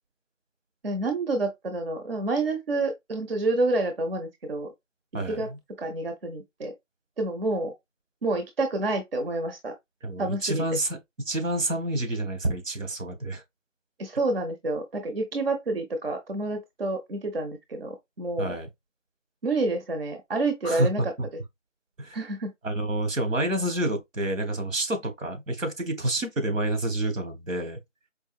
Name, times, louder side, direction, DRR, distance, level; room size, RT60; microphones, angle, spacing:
voice 1, 0.8-4.7 5.3-5.5 5.8-6.7 7.2-7.7 8.2-9.7 10.2-10.6 14.0-18.6 19.4-21.1 22.1-22.5, right 2 dB, 50° right, 0.8 m, -28 dB
voice 2, 5.1-5.6 10.0-11.0 11.2-13.4 18.4-18.7 20.6-21.1 22.0-22.1 22.6-27.8, right 1 dB, 85° right, 1.5 m, -28 dB
4.7 x 2.5 x 2.4 m
figure-of-eight pair, 170°, 38 cm